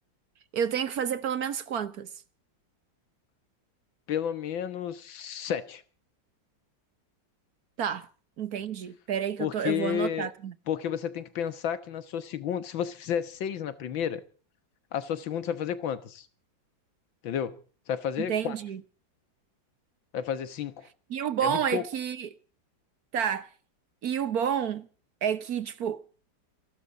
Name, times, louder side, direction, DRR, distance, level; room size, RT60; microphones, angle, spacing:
voice 1, 0.5-2.1 7.8-8.1 8.4-10.5 18.2-18.8 21.1-22.3 23.1-23.5 24.0-24.9 25.2-26.0, right 8 dB, 55° right, 1.4 m, -30 dB
voice 2, 4.1-5.8 9.4-10.3 10.7-14.2 14.9-16.3 17.2-17.6 17.9-18.6 20.1-20.9 21.4-21.8, left 9 dB, 85° left, 2.0 m, -31 dB
28.5 x 12.0 x 3.9 m
omnidirectional pair, 2.1 m